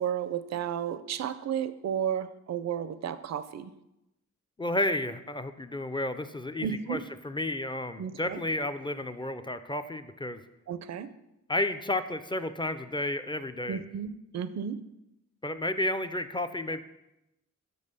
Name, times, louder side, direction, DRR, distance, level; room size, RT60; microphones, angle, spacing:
voice 1, 0.0-3.7 6.6-7.0 8.0-8.4 10.7-11.1 13.7-14.8, right 8 dB, 60° right, 13 dB, 0.5 m, -33 dB
voice 2, 4.6-10.4 11.5-13.8 15.4-16.8, left 1 dB, 15° left, 9 dB, 0.4 m, -32 dB
6.2 x 5.4 x 6.7 m, 0.89 s
wide cardioid pair, 105°, 30 cm